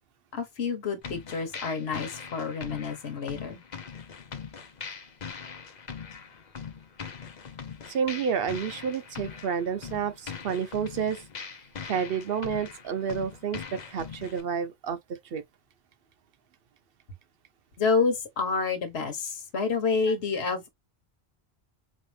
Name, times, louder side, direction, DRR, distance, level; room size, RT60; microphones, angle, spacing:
voice 1, 0.3-3.6 17.8-20.7, left 5 dB, 80° left, 1.4 m, -28 dB
sound 1, 1.0-14.4, left 6 dB, 45° left, 0.8 m, -41 dB
voice 2, 7.9-11.5 11.9-13.6 13.9-15.0 15.3-15.4, right 7 dB, 65° right, 0.8 m, -30 dB
4.1 x 2.5 x 3.3 m
omnidirectional pair, 1.1 m